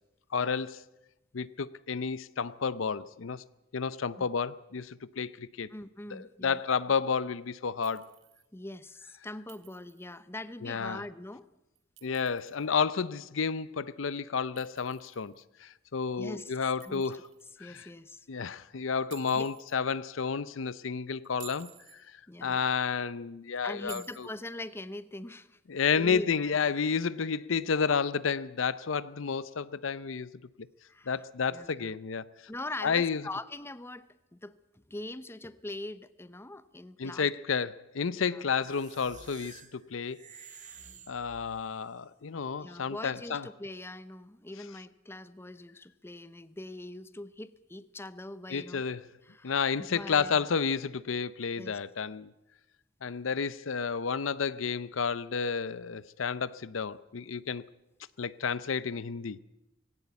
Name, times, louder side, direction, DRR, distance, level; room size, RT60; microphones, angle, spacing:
voice 1, 0.3-0.8 1.3-3.4 3.7-5.7 6.1-8.1 10.6-11.0 12.0-15.3 15.6-17.2 17.6-17.9 18.3-22.0 22.4-24.3 25.7-30.3 31.1-32.3 32.8-33.2 37.0-40.2 41.1-43.5 48.5-49.0 49.4-52.3 53.0-57.6 58.2-59.4, left 6 dB, 85° left, 0.6 m, -31 dB
voice 2, 5.7-6.6 8.5-11.5 16.2-16.5 16.8-17.0 17.6-18.3 19.3-19.5 22.3-22.7 23.6-25.6 26.0-26.5 30.9-31.2 31.5-32.0 32.5-34.6 34.9-37.3 38.1-38.4 42.6-48.8 49.2-50.5 51.6-51.8, left 1 dB, 15° left, 0.7 m, -42 dB
Chink clink, 7.8-8.5 9.5-10.1 11.7-12.6 14.6-15.4 16.8-17.5 19.1-19.8 21.2-22.0 23.9-24.5, right 10 dB, 75° right, 1.8 m, -52 dB
sound 1, 38.6-41.9, right 6 dB, 40° right, 1.6 m, -52 dB
18.5 x 17.0 x 8.2 m
head